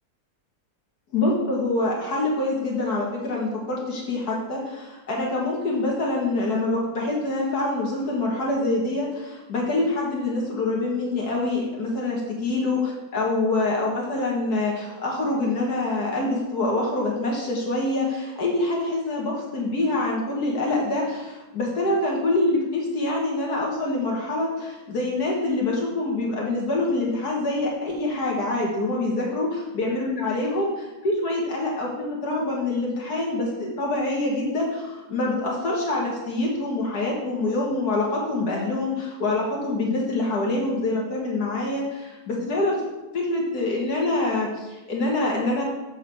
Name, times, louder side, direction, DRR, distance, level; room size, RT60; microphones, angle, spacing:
voice 1, 1.1-29.5 29.7-42.8 43.1-45.6, left 2 dB, 80° left, -3 dB, 2.0 m, -25 dB
7.7 x 6.8 x 4.6 m, 1.1 s
omnidirectional pair, 1.6 m